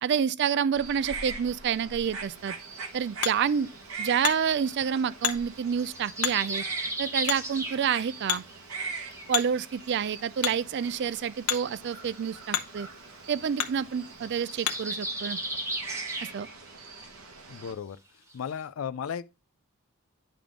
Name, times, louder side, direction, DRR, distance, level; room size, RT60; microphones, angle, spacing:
voice 1, 0.0-2.5 2.9-3.7 4.0-6.6 7.0-8.4 9.3-12.9 13.3-15.4 16.3-16.5, right 7 dB, 50° right, 0.3 m, -28 dB
sound 1, 0.8-17.7, right 4 dB, 70° right, 1.0 m, -42 dB
sound 2, 1.9-2.1 2.8-5.1 5.6-8.2 8.5-10.1 10.6-10.7 10.8-11.1 12.1-12.2 12.5-12.6 12.9-13.1 13.4-13.6 13.8-16.7 17.0-17.2 17.6-17.7 18.3-18.4, right 1 dB, 15° right, 0.9 m, -37 dB
Hammer, 2.3-15.0, left 10 dB, 90° left, 0.8 m, -36 dB
voice 2, 17.5-18.0 18.3-19.2, left 7 dB, 65° left, 0.4 m, -34 dB
10.0 x 3.5 x 3.7 m
head